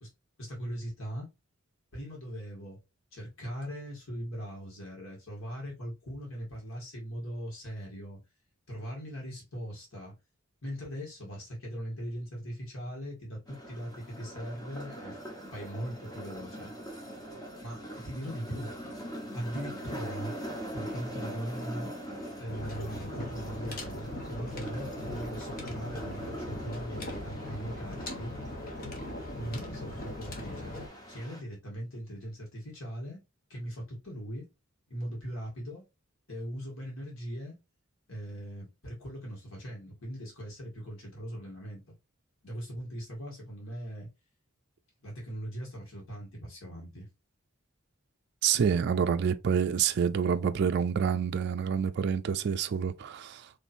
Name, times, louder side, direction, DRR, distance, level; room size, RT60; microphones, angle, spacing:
voice 1, 0.4-1.3 1.9-2.8 3.1-8.2 8.7-10.1 10.6-15.2 15.5-16.7 17.6-18.7 19.3-20.3 20.7-21.9 22.4-28.3 29.3-30.8 31.1-33.2 33.5-34.5 34.9-35.8 36.3-37.6 38.1-41.8 42.4-44.1 45.0-47.1, equal, 80° left, 1.9 m, -40 dB
sound 1, 13.5-31.4, equal, 20° left, 1.3 m, -42 dB
sound 2, 22.5-30.9, left 1 dB, 45° left, 1.0 m, -40 dB
voice 2, 48.4-53.5, right 7 dB, 55° right, 0.4 m, -27 dB
4.3 x 3.1 x 2.7 m
head